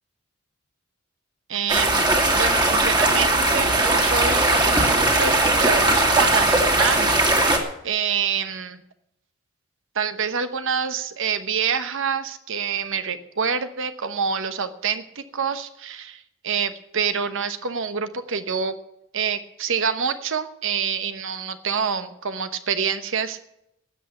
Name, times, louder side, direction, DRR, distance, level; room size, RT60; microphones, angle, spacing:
voice 1, 1.5-2.1 2.3-8.8 9.9-18.7 19.1-23.4, right 6 dB, 60° right, 10 dB, 1.1 m, -27 dB
sound 1, 1.7-7.6, right 2 dB, 20° right, 2.3 m, -19 dB
13.0 x 8.3 x 8.7 m, 0.80 s
head